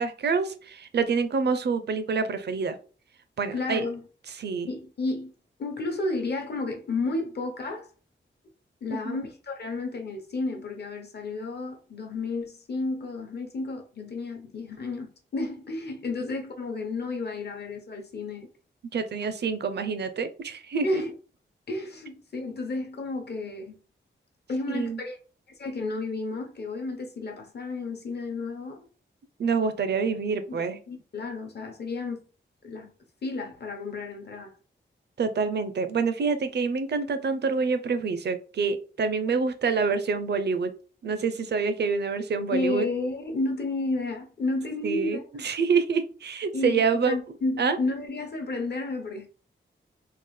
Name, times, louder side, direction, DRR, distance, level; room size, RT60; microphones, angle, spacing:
voice 1, 0.0-2.8 3.4-3.9 4.4-4.7 8.9-9.2 18.9-21.0 24.7-25.0 29.4-30.8 35.2-40.7 41.0-42.9 44.8-47.2 47.6-47.8, right 5 dB, 60° right, 0.5 m, -27 dB
voice 2, 3.5-4.0 4.7-5.3 5.6-7.9 8.8-18.5 20.8-21.1 21.7-23.8 24.5-25.2 25.6-28.8 30.5-32.2 32.6-32.9 33.2-34.5 42.5-45.3 46.5-49.3, left 2 dB, 55° left, 0.9 m, -32 dB
3.8 x 2.4 x 3.1 m
wide cardioid pair, 140°, 20 cm